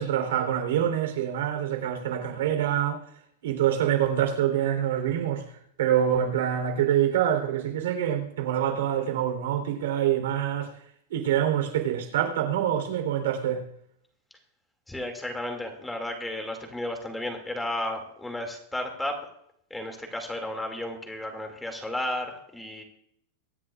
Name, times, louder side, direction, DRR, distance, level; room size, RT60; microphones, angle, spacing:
voice 1, 0.0-3.0 3.4-10.7 11.1-13.7, right 10 dB, 80° right, 3.4 m, -26 dB
voice 2, 14.9-19.2 19.7-22.8, left 1 dB, 5° left, 2.2 m, -33 dB
24.0 x 9.9 x 2.4 m
supercardioid pair, 150°, 0 cm